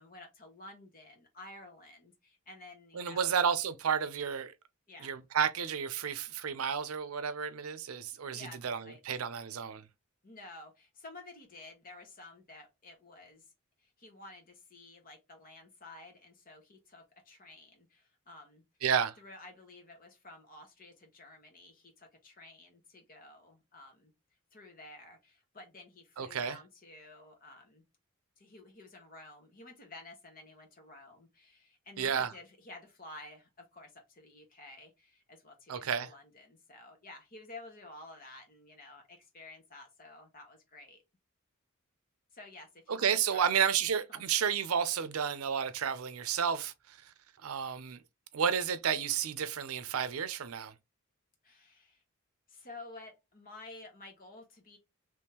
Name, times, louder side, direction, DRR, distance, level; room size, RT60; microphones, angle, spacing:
voice 1, 0.0-3.3 4.9-5.2 8.3-9.0 10.2-13.5 13.8-18.6 19.2-24.1 24.5-27.8 28.4-41.0 42.3-43.7 44.1-44.2 51.4-52.0 52.5-54.8, left 2 dB, 40° left, 1.3 m, -52 dB
voice 2, 2.9-4.5 5.0-9.8 18.8-19.1 26.2-26.6 32.0-32.3 35.7-36.1 42.9-47.1 47.4-48.0 48.3-50.7, right 7 dB, 85° right, 0.5 m, -31 dB
3.6 x 3.0 x 2.9 m
head